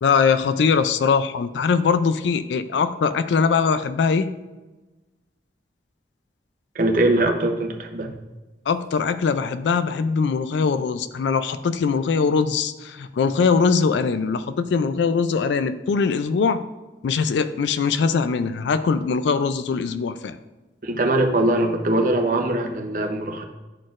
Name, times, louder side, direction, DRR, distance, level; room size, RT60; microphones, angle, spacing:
voice 1, 0.0-4.3 8.7-16.6 17.0-20.4, left 5 dB, 85° left, 11 dB, 0.4 m, -21 dB
voice 2, 6.7-8.1 20.8-23.4, right 1 dB, 50° right, 3 dB, 0.7 m, -21 dB
10.5 x 4.1 x 2.5 m, 1.2 s
head